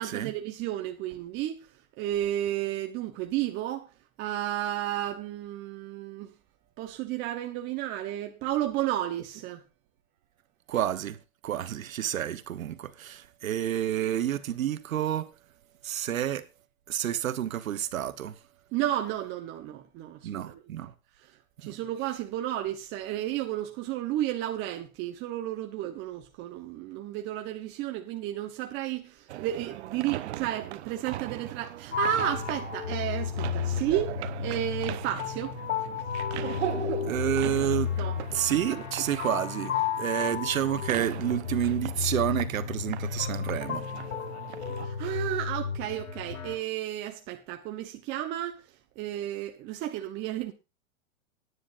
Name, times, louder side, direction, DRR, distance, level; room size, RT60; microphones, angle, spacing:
voice 1, 0.0-1.7 2.0-3.9 4.2-6.3 6.8-9.6 18.7-20.6 21.2-21.3 21.6-34.1 34.4-35.6 38.0-38.2 38.7-38.8 44.8-48.6 49.0-50.5, right 13 dB, 25° right, 1.0 m, -32 dB
voice 2, 10.7-11.2 11.4-15.3 15.8-16.5 16.9-18.4 20.2-20.9 21.6-21.7 37.0-37.9 38.3-43.9, right 11 dB, 80° right, 1.3 m, -29 dB
sound 1, 29.3-44.9, right 14 dB, 55° right, 1.0 m, -40 dB
sound 2, 31.9-46.6, left 7 dB, 90° left, 3.5 m, -33 dB
17.5 x 9.8 x 2.6 m
hypercardioid pair, 145°, 40 cm